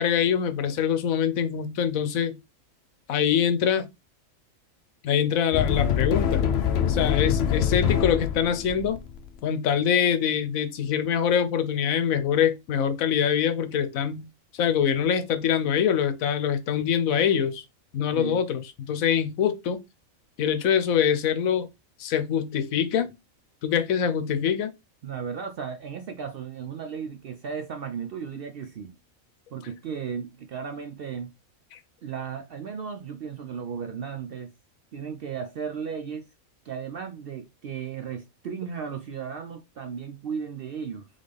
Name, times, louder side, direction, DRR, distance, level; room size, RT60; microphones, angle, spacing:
voice 1, 0.0-2.4 3.1-3.9 5.0-6.5 6.8-9.0 9.4-14.3 14.5-17.6 17.9-19.8 20.4-21.7 22.0-23.1 23.6-24.7 31.7-31.8, left 8 dB, 85° left, 1.1 m, -24 dB
sound 1, 5.5-9.2, left 8 dB, 60° left, 0.7 m, -24 dB
voice 2, 18.1-18.4 25.0-29.0 29.5-31.3 32.0-34.5 34.9-36.3 36.6-41.1, right 6 dB, 70° right, 0.5 m, -35 dB
4.0 x 3.6 x 3.3 m
omnidirectional pair, 1.4 m